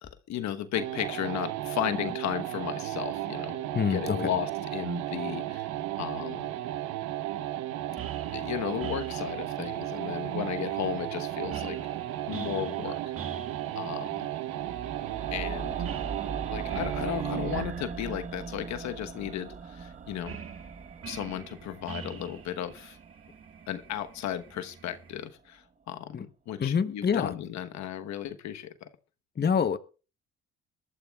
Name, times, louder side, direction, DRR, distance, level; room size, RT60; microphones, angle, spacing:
voice 1, 0.0-3.6 3.9-5.7 6.0-6.5 8.3-11.8 12.3-13.0 13.8-14.3 15.3-15.8 16.5-20.4 21.1-23.0 23.7-28.9, left 10 dB, 70° left, 9 dB, 1.2 m, -35 dB
sound 1, 0.7-17.8, right 13 dB, 75° right, 1.0 m, -34 dB
voice 2, 3.7-4.3 26.1-26.3 26.6-27.3 29.4-29.8, left 6 dB, 35° left, 11 dB, 1.0 m, -26 dB
sound 2, 8.0-25.2, right 8 dB, 50° right, 1.9 m, -45 dB
sound 3, 14.6-24.7 25.0-25.1, right 5 dB, 25° right, 0.7 m, -41 dB
22.0 x 13.0 x 2.4 m, 0.34 s
supercardioid pair, 65°, 29 cm